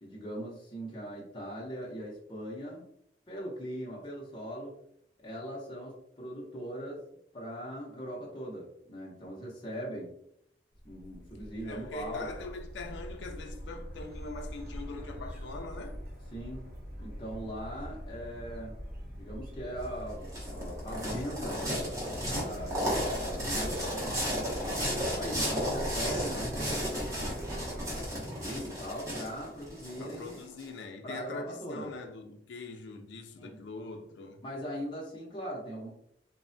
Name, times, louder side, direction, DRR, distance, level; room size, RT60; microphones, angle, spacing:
voice 1, 0.0-2.8 3.3-4.7 5.2-7.0 7.3-10.1 10.8-12.3 16.3-16.7 17.0-18.8 19.2-21.9 22.3-24.5 24.9-27.2 28.2-30.4 31.0-31.9 33.4-33.6 34.4-35.9, equal, 25° left, 0.6 m, -40 dB
sound 1, 10.7-28.1, equal, 60° right, 0.9 m, -42 dB
voice 2, 11.6-16.0 30.0-34.4, left 3 dB, 85° left, 0.4 m, -42 dB
sound 2, 19.8-30.6, equal, 20° right, 0.8 m, -34 dB
3.2 x 2.1 x 2.5 m
head